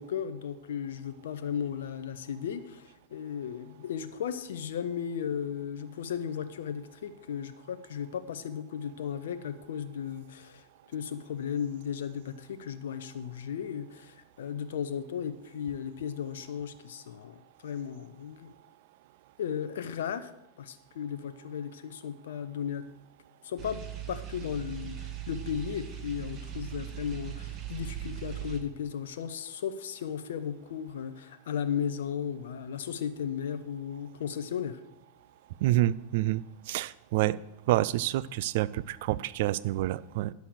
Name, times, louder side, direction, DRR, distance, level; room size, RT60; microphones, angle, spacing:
voice 1, 0.0-18.5 19.4-20.3 20.6-22.8 23.4-23.8 24.1-34.8, left 8 dB, 60° left, 10 dB, 0.6 m, -35 dB
sound 1, 23.6-28.6, right 11 dB, 35° right, 1.4 m, -39 dB
voice 2, 35.6-37.4 37.7-40.3, right 15 dB, 50° right, 18 dB, 0.3 m, -28 dB
9.3 x 6.9 x 6.3 m, 0.86 s
figure-of-eight pair, 90°, 0 cm